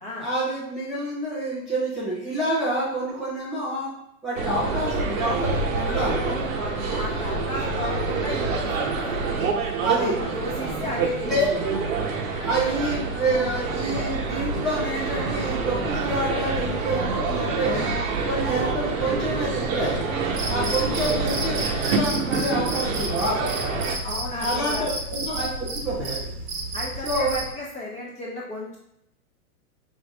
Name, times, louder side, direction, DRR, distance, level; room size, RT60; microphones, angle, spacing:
voice 1, 0.2-3.9 4.2-6.4 7.1-7.3 7.8-7.9 9.8-10.2 10.6-10.9 11.2-11.8 12.3-17.8 18.2-20.0 20.5-23.9 24.4-26.3 27.0-27.4, right 1 dB, ahead, -13 dB, 0.3 m, -28 dB
sound 1, 4.4-24.0, right 4 dB, 60° right, 0.9 m, -27 dB
voice 2, 6.2-9.2 9.9-11.4 20.9-21.1 24.0-25.0 26.7-28.8, left 2 dB, 15° left, -6 dB, 0.8 m, -34 dB
Cricket, 20.3-27.5, right 2 dB, 35° right, 1.0 m, -31 dB
5.4 x 2.6 x 3.4 m, 0.80 s
hypercardioid pair, 145°, 45 cm